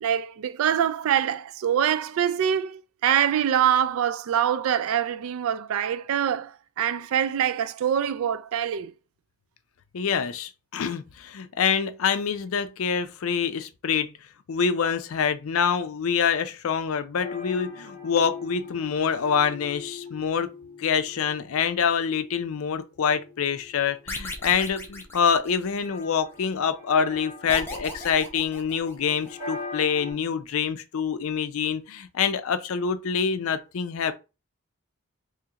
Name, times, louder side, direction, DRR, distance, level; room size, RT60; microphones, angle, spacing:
voice 1, 0.0-8.9, right 9 dB, 70° right, 0.3 m, -24 dB
voice 2, 9.9-14.1 14.5-20.5 20.8-34.1, left 6 dB, 70° left, 0.4 m, -26 dB
sound 1, 17.2-30.1, left 4 dB, 10° right, 1.5 m, -41 dB
sound 2, 24.1-26.0 27.5-29.3, left 1 dB, 10° left, 0.7 m, -37 dB
3.6 x 3.1 x 2.8 m
head